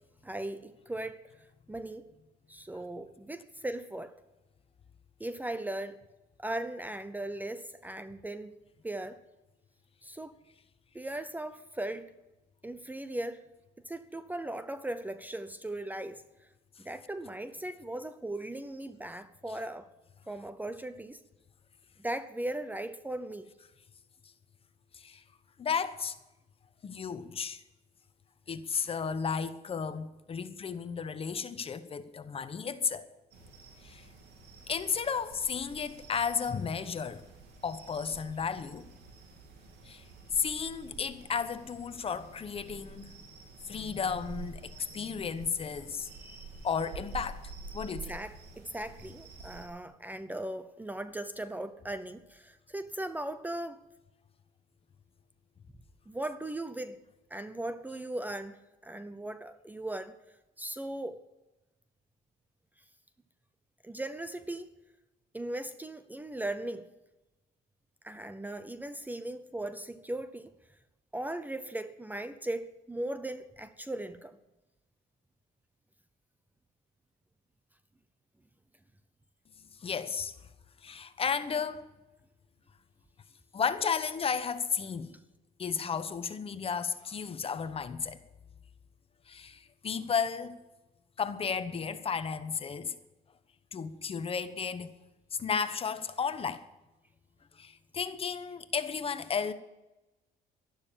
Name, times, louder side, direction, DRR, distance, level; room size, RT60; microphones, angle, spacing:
voice 1, 0.2-1.2 1.7-2.0 2.5-4.1 5.2-6.0 6.4-8.6 8.8-9.2 10.0-10.4 10.9-12.1 12.6-13.4 13.8-16.2 16.8-19.9 20.3-21.2 22.0-23.5 48.1-53.8 56.1-57.0 57.3-60.2 60.6-61.2 63.8-64.7 65.3-66.9 68.0-70.5 71.1-74.4, right 1 dB, 10° right, 0.7 m, -38 dB
voice 2, 25.6-26.1 26.8-27.6 28.5-33.1 33.8-34.1 34.7-37.2 37.6-38.9 39.8-40.0 40.3-43.1 43.7-46.4 46.6-48.1 79.8-80.3 80.8-81.9 83.5-85.1 85.6-88.2 89.3-90.6 91.2-93.0 93.7-94.9 95.3-96.6 97.6-99.5, left 6 dB, 35° left, 1.1 m, -33 dB
sound 1, 33.3-49.7, right 4 dB, 75° right, 3.5 m, -49 dB
12.0 x 11.5 x 7.4 m
cardioid pair, 110°, 17 cm